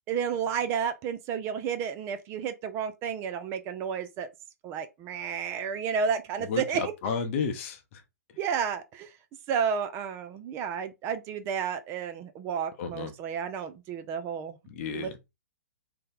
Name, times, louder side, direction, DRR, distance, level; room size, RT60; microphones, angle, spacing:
voice 1, 0.1-4.3 4.6-6.9 8.4-9.1 9.5-14.6 14.9-15.2, right 7 dB, 30° right, 0.4 m, -31 dB
voice 2, 6.5-8.0 12.8-13.1 14.7-15.2, left 6 dB, 45° left, 0.7 m, -32 dB
2.7 x 2.1 x 3.6 m
hypercardioid pair, 125°, 9 cm